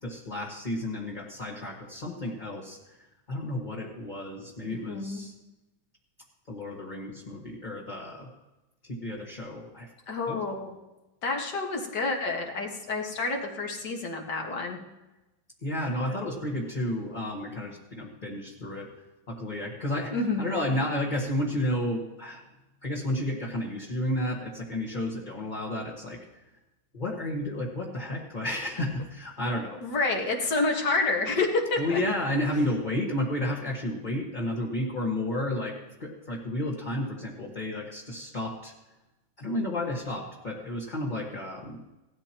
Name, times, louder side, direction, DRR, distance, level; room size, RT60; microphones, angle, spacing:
voice 1, 0.0-3.0 3.3-5.3 6.5-8.3 8.9-9.9 10.3-10.4 15.6-18.9 19.3-20.1 20.4-22.4 22.8-26.2 26.9-29.8 31.8-35.7 36.0-38.7 39.4-41.8, left 1 dB, 25° left, -3 dB, 1.5 m, -32 dB
voice 2, 4.6-5.2 10.1-10.7 11.2-14.8 16.1-16.3 20.1-20.6 29.8-32.0, left 3 dB, 55° left, 1 dB, 2.3 m, -29 dB
18.0 x 13.0 x 3.0 m, 1.0 s
omnidirectional pair, 2.2 m